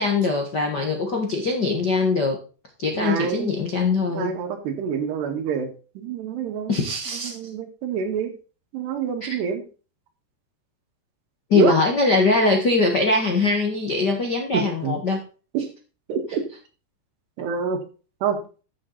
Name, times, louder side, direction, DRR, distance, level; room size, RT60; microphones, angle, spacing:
voice 1, 0.0-2.4 2.8-4.3 6.7-7.4 9.2-9.3 11.5-15.2, left 3 dB, 65° left, 3 dB, 1.0 m, -22 dB
voice 2, 2.9-3.6 4.1-6.9 7.2-8.4 8.7-9.7 11.5-11.8 14.5-15.0 15.5-15.7 16.1-16.5 17.4-17.8 18.2-18.4, right 6 dB, 80° right, 6 dB, 3.9 m, -27 dB
13.5 x 7.7 x 4.0 m, 0.35 s
omnidirectional pair, 4.8 m